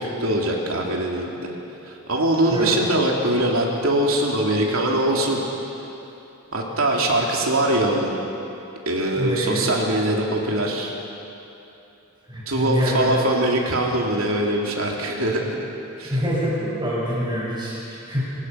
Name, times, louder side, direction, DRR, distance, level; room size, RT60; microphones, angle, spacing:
voice 1, 0.0-1.5 1.8-5.4 6.5-8.1 8.9-10.9 12.5-15.6 16.0-16.2, right 1 dB, 75° right, -1 dB, 3.1 m, -22 dB
voice 2, 9.2-9.7 12.3-13.2 16.1-18.3, equal, 20° right, -5 dB, 6.2 m, -25 dB
25.5 x 19.5 x 5.9 m, 2.9 s
head